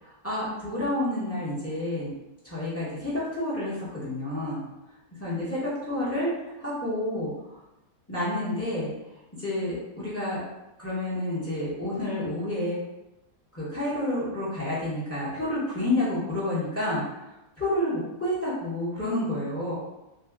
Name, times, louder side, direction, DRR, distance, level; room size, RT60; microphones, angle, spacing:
voice 1, 0.0-2.1 2.4-4.6 5.1-7.3 8.1-8.9 9.4-10.4 10.8-12.8 13.5-17.0 17.6-19.7, left 1 dB, 15° left, -8 dB, 0.5 m, -29 dB
2.7 x 2.2 x 3.4 m, 0.94 s
omnidirectional pair, 1.8 m